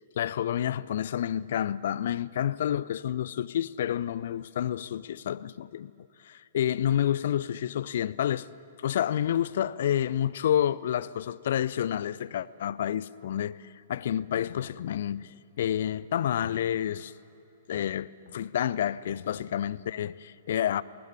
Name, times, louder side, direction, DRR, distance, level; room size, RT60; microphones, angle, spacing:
voice 1, 0.2-5.9 6.2-8.5 8.8-13.6 13.9-17.1 17.7-20.8, left 10 dB, 55° left, 0.5 m, -29 dB
20.0 x 18.0 x 10.0 m
figure-of-eight pair, 110°, 0 cm